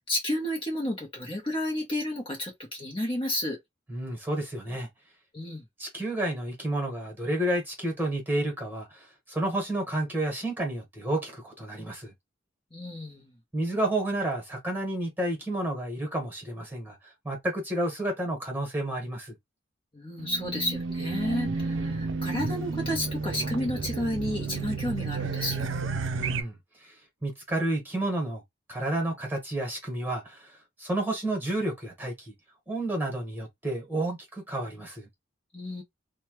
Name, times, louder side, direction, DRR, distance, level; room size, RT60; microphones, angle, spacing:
voice 1, 0.0-3.6 5.3-5.6 12.7-13.3 19.9-25.8 35.5-35.8, left 1 dB, 25° left, 0.9 m, -31 dB
voice 2, 3.9-4.9 5.8-12.1 13.5-19.3 26.1-26.9 27.2-28.4 28.7-32.3 32.7-35.1, right 1 dB, 10° right, 1.3 m, -31 dB
Race car auto racing / Alarm, 20.2-26.4, right 4 dB, 80° right, 0.5 m, -31 dB
3.0 x 2.3 x 3.0 m
head